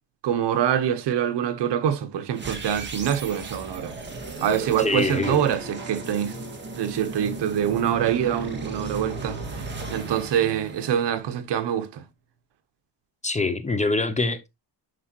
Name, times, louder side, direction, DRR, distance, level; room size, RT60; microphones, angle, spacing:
voice 1, 0.2-4.0 4.4-6.4 6.8-12.0, right 9 dB, 70° right, 1.2 m, -25 dB
sound 1, 2.3-11.5, right 2 dB, 25° right, 1.9 m, -35 dB
voice 2, 4.8-5.4 13.2-14.5, left 3 dB, 15° left, 0.7 m, -24 dB
11.0 x 5.3 x 3.0 m
cardioid pair, 155°, 44 cm